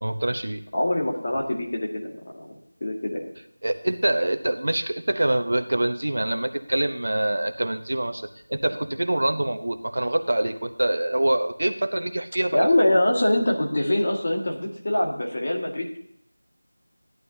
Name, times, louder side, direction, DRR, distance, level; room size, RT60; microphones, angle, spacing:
voice 1, 0.0-0.6 3.6-12.7, right 1 dB, 55° right, 8 dB, 1.0 m, -25 dB
voice 2, 0.7-3.3 12.5-16.0, left 1 dB, 30° left, 0 dB, 1.9 m, -24 dB
16.0 x 11.0 x 2.8 m, 0.70 s
figure-of-eight pair, 175°, 0 cm